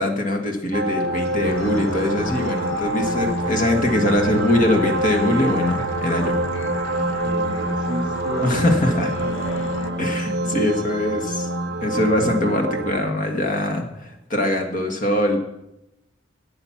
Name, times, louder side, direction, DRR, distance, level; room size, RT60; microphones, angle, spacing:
voice 1, 0.0-6.4 6.9-7.1 8.4-9.1 10.0-11.5 11.8-15.4, left 1 dB, 40° left, 3 dB, 1.6 m, -22 dB
sound 1, 0.7-13.0, right 2 dB, 50° right, 0.7 m, -26 dB
sound 2, 1.4-9.9, left 3 dB, 75° left, 0.8 m, -32 dB
voice 2, 7.2-10.5, right 1 dB, 20° right, 3 dB, 1.7 m, -34 dB
13.0 x 8.8 x 5.9 m, 0.87 s
head